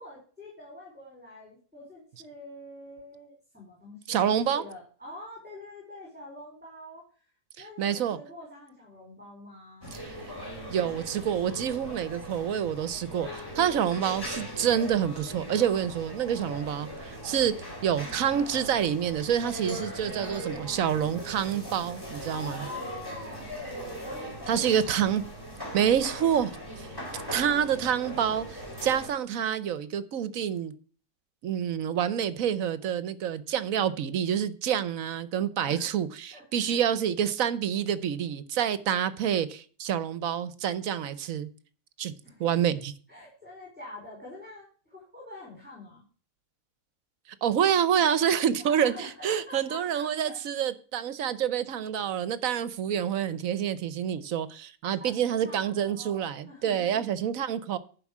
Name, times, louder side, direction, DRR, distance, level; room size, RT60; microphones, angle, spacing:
voice 1, 0.0-7.0 7.6-10.0 22.3-24.7 26.9-27.7 35.6-35.9 36.3-36.8 42.2-42.5 43.1-46.0 48.6-50.7 55.0-57.1, left 2 dB, 5° right, 4.4 m, -46 dB
voice 2, 4.1-4.6 7.8-8.2 10.0-10.2 10.7-17.5 17.8-22.7 24.5-25.2 25.7-26.5 27.3-30.7 31.4-41.5 42.0-42.1 42.4-42.9 47.4-57.8, right 9 dB, 70° right, 1.2 m, -27 dB
sound 1, 9.8-29.1, equal, 15° left, 3.2 m, -39 dB
11.0 x 5.5 x 7.2 m
omnidirectional pair, 1.5 m